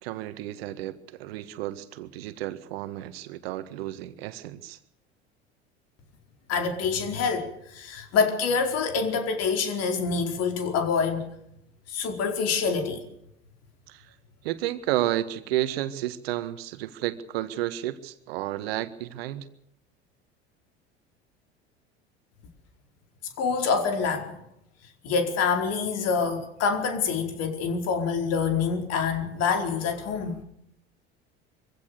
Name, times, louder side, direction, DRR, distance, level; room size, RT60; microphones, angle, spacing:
voice 1, 0.0-4.8 13.9-14.1 14.4-19.5, right 14 dB, 65° right, 1.7 m, -31 dB
voice 2, 6.5-11.3 11.9-13.0 23.4-24.4 25.0-30.4, left 5 dB, 50° left, 4.7 m, -26 dB
24.5 x 16.5 x 6.7 m
figure-of-eight pair, 70°, 33 cm